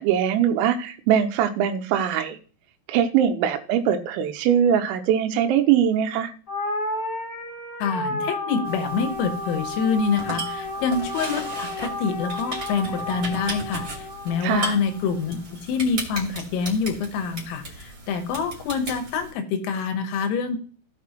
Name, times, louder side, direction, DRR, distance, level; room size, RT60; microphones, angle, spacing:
voice 1, 0.0-2.4 2.9-6.3 14.4-14.7, right 9 dB, 90° right, 6 dB, 3.4 m, -21 dB
sound 1, 6.5-15.0, left 1 dB, 25° left, 2.3 m, -32 dB
voice 2, 7.8-20.6, left 5 dB, 85° left, 8 dB, 3.8 m, -26 dB
sound 2, 8.6-19.3, right 2 dB, 30° right, 2.5 m, -37 dB
16.0 x 6.1 x 3.0 m, 0.40 s
omnidirectional pair, 5.9 m